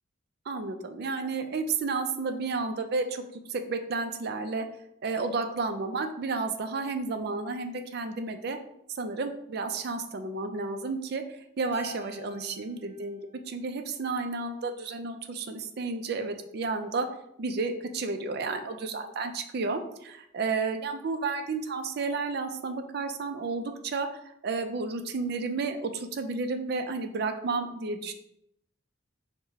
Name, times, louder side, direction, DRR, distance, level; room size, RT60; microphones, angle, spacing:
voice 1, 0.5-3.2 3.5-4.6 5.0-8.6 9.0-13.2 13.5-17.1 17.4-28.1, right 4 dB, 50° right, 7 dB, 0.4 m, -32 dB
Keyboard (musical), 11.7-14.2, left 2 dB, 10° right, 1.1 m, -49 dB
4.7 x 2.1 x 3.5 m, 0.78 s
head